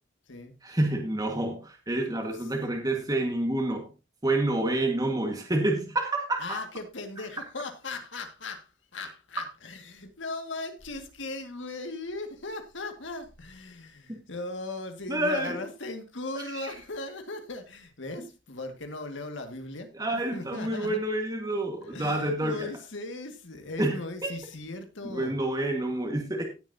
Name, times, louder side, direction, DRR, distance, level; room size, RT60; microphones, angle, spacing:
voice 1, 0.6-3.9 4.2-6.6 14.1-14.2 15.1-15.6 16.3-16.7 19.9-22.7 23.8-24.0 24.2-24.3 25.0-26.5, right 1 dB, 20° right, 2 dB, 1.6 m, -28 dB
voice 2, 6.4-19.9 20.3-21.0 21.8-25.3, left 2 dB, 80° left, 6 dB, 1.9 m, -38 dB
17.0 x 7.2 x 2.7 m, 0.29 s
head